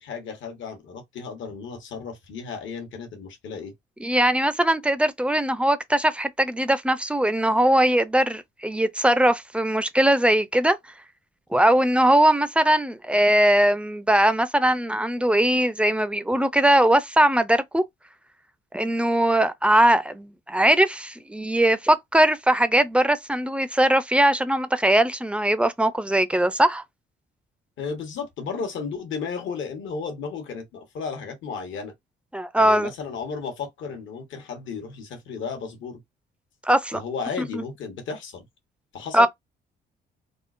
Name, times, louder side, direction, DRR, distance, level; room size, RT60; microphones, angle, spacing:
voice 1, 0.0-3.7 27.8-31.9 32.5-36.0 36.9-38.5 38.9-39.3, left 5 dB, 75° left, 1.1 m, -34 dB
voice 2, 4.0-10.8 11.5-17.8 18.7-26.8 32.3-32.9 36.6-37.0 37.5-37.6 39.1-39.3, right 1 dB, 5° right, 0.4 m, -20 dB
3.6 x 2.0 x 2.4 m
cardioid pair, 90°, 20 cm